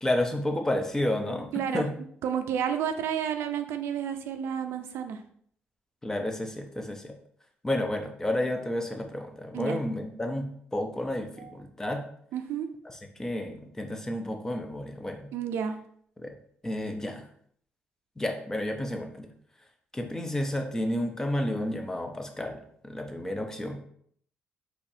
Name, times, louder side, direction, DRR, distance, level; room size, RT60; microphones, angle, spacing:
voice 1, 0.0-1.5 1.7-1.9 6.0-7.1 7.6-12.0 12.8-15.3 16.2-16.3 16.6-17.3 18.2-19.3 19.9-23.8, left 1 dB, 15° left, 4 dB, 0.5 m, -31 dB
voice 2, 1.5-1.9 2.2-5.2 9.5-9.8 11.4-11.5 12.3-12.7 15.3-15.7, right 8 dB, 80° right, 7 dB, 0.4 m, -31 dB
4.1 x 3.0 x 2.7 m, 0.63 s
cardioid pair, 120°, 4 cm